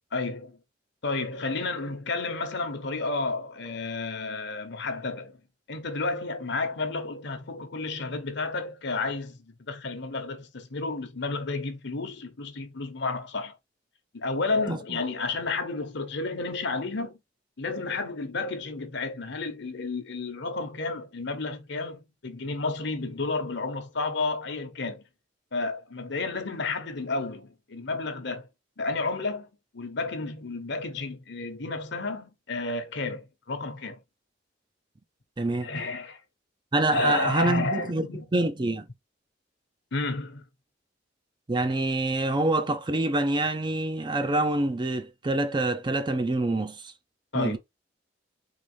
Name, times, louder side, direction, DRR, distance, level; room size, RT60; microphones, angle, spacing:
voice 1, 0.1-0.6 1.0-5.4 5.7-13.6 14.1-17.2 17.6-25.0 25.5-28.5 28.8-34.0 35.6-36.2 36.9-38.3 39.9-40.5 47.3-47.6, left 3 dB, 65° left, 0.9 m, -31 dB
voice 2, 35.4-35.7 36.7-38.1 38.3-38.9 41.5-46.9 47.3-47.6, right 2 dB, 25° right, 0.5 m, -26 dB
4.0 x 3.0 x 3.2 m
head